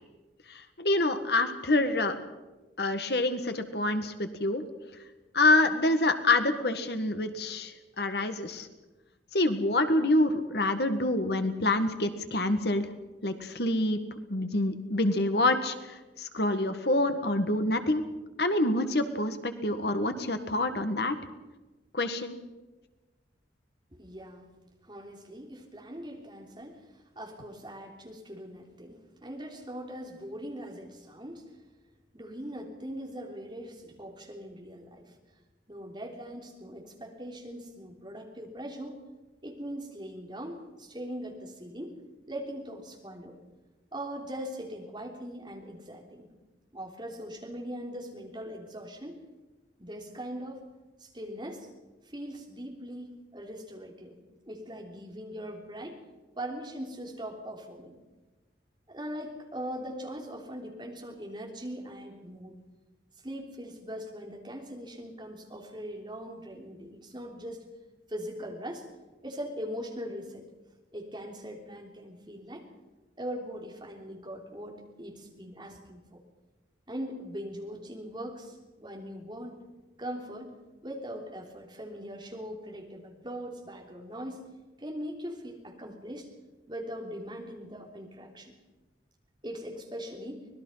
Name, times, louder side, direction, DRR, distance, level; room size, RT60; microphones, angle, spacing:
voice 1, 0.5-2.2 2.8-4.6 5.3-8.7 9.3-12.9 13.2-14.0 14.3-18.0 18.4-21.2 21.9-22.4, left 2 dB, 60° left, 8 dB, 1.7 m, -27 dB
voice 2, 24.0-24.5 24.8-31.4 32.1-35.1 35.7-39.0 39.4-42.0 42.3-43.4 43.9-46.3 46.7-49.2 49.8-50.6 51.0-51.7 52.1-54.2 54.5-56.0 56.4-58.0 58.9-62.6 63.2-67.7 68.1-68.9 69.2-70.4 70.9-72.6 73.2-76.2 76.9-79.6 80.0-80.5 80.8-84.4 84.8-86.3 86.7-88.6 89.4-90.5, equal, 25° right, 1 dB, 3.4 m, -41 dB
25.0 x 19.5 x 5.7 m, 1.2 s
head